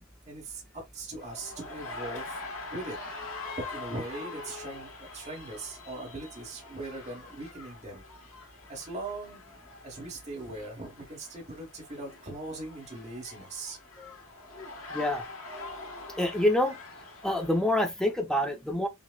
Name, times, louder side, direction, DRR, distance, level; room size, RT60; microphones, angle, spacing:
voice 1, 0.3-0.6 0.9-2.4 2.7-3.0 3.7-8.0 8.7-9.4 9.8-13.8, right 2 dB, 30° right, 1.1 m, -40 dB
sound 1, 1.2-17.8, left 3 dB, 85° left, 1.2 m, -44 dB
voice 2, 14.9-15.2 16.2-16.8 17.2-18.9, left 1 dB, 5° left, 0.5 m, -26 dB
5.8 x 2.0 x 2.2 m
head